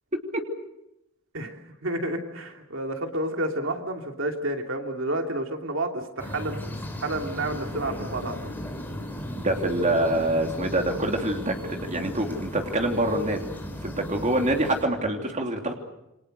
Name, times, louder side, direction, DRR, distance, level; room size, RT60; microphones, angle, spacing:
voice 1, 0.1-0.4 9.3-13.5 13.8-15.7, right 1 dB, 35° right, 3 dB, 3.1 m, -26 dB
voice 2, 1.3-6.6 7.0-8.4, right 1 dB, 65° right, 4 dB, 2.9 m, -30 dB
sound 1, 6.2-14.8, equal, 10° left, 4.6 m, -36 dB
28.5 x 25.5 x 6.7 m, 0.88 s
head